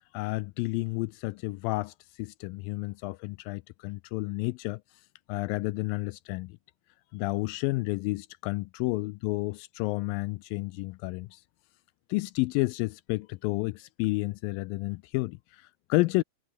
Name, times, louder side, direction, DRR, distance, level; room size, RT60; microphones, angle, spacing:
voice 1, 0.1-4.8 5.3-6.6 7.1-11.4 12.1-16.2, left 22 dB, 90° left, 2.0 m, -31 dB
omnidirectional pair, 4.6 m